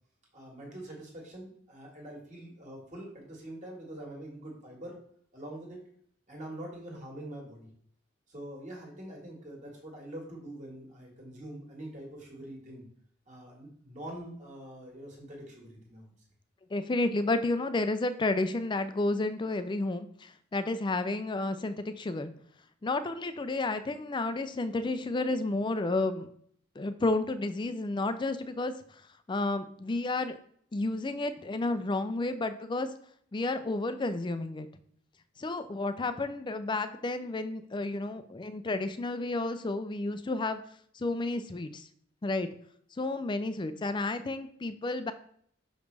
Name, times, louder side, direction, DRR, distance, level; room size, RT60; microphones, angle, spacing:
voice 1, 0.3-5.0 5.3-5.8 6.3-7.7 8.3-12.9 13.3-16.1, right 1 dB, 40° right, -1 dB, 1.8 m, -44 dB
voice 2, 16.7-22.3 22.8-26.3 26.8-29.0 29.3-30.4 30.7-32.9 33.3-34.7 35.4-40.6 40.9-41.9 42.2-42.5 42.9-45.1, left 2 dB, 25° left, 11 dB, 0.4 m, -31 dB
6.1 x 5.2 x 3.3 m, 0.63 s
head